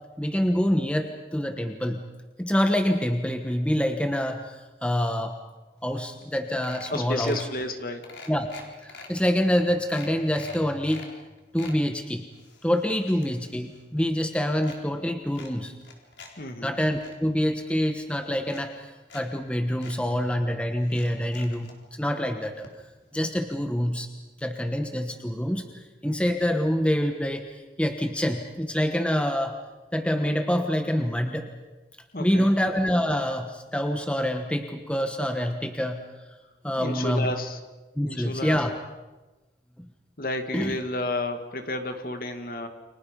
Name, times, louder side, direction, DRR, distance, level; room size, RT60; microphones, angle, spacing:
voice 1, 0.2-2.0 2.4-5.3 5.8-7.5 8.3-8.5 8.8-11.1 11.5-12.3 12.6-15.7 16.6-22.7 23.1-24.1 24.4-29.5 29.9-31.5 32.2-36.0 36.6-37.3 38.0-38.7 39.8-39.9 40.5-40.8, equal, 5° left, 6 dB, 1.2 m, -26 dB
sound 1, 5.9-6.0 6.2-6.4 6.6-7.5 8.0-9.1 9.5-9.6 9.9-11.1 11.4-11.8 12.3-13.8 14.1-14.8 15.3-16.3 16.7-17.1 17.9-18.0 18.4-19.2 19.5-19.6 19.8-20.0 20.8-21.8 22.6-22.7 23.0-23.1, left 4 dB, 75° left, 4.1 m, -45 dB
voice 2, 6.9-8.1 16.4-16.7 32.1-32.5 36.8-37.6 38.0-38.6 40.2-42.7, left 1 dB, 50° left, 6 dB, 2.2 m, -31 dB
29.5 x 25.0 x 5.4 m, 1.2 s
head